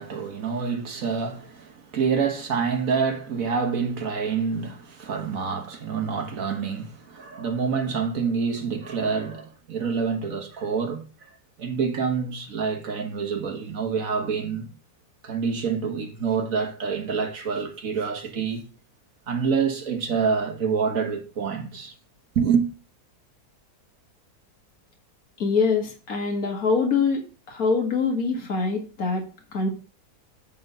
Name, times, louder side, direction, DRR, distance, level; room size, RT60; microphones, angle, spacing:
voice 1, 0.0-11.1 11.6-14.7 15.2-18.6 19.3-21.9 22.3-22.7, right 6 dB, 60° right, 1.7 m, -27 dB
voice 2, 25.4-29.2 29.5-29.7, left 4 dB, 65° left, 2.3 m, -24 dB
9.5 x 3.9 x 5.5 m
omnidirectional pair, 1.6 m